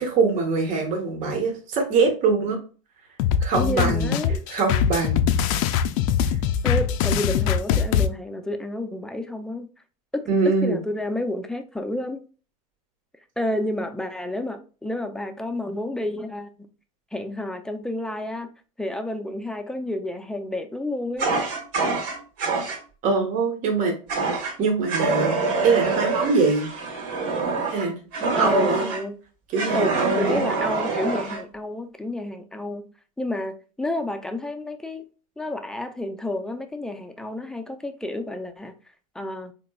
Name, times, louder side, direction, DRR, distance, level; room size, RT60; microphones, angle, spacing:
voice 1, 0.0-2.6 3.4-4.2 4.5-5.3 10.3-10.8 23.0-23.9 24.6-25.3 25.6-26.7 27.7-28.9 29.5-30.4, right 4 dB, 45° right, 1.1 m, -23 dB
sound 1, 3.2-8.1, left 8 dB, 70° left, 0.4 m, -22 dB
voice 2, 3.6-4.4 6.6-9.7 10.1-12.2 13.4-16.6 17.1-18.5 18.8-21.3 28.3-29.1 29.7-32.9 33.2-35.1 35.4-38.7 39.2-39.5, left 1 dB, 5° left, 0.4 m, -30 dB
Fire, 21.2-22.8 24.1-24.5 24.9-29.0 29.6-31.4, right 4 dB, 70° right, 1.5 m, -25 dB
3.9 x 2.9 x 2.3 m
supercardioid pair, 110°, 18 cm